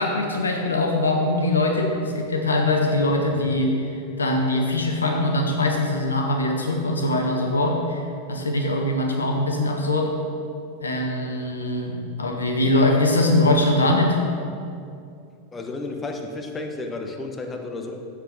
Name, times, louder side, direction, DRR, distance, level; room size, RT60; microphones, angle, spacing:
voice 1, 0.0-3.9 4.2-8.0 8.3-10.1 10.8-14.2, left 1 dB, 90° left, 2 dB, 1.1 m, -22 dB
voice 2, 15.5-18.1, left 2 dB, 20° left, 3 dB, 1.1 m, -32 dB
7.8 x 6.6 x 6.7 m, 2.4 s
hypercardioid pair, 90°, 0 cm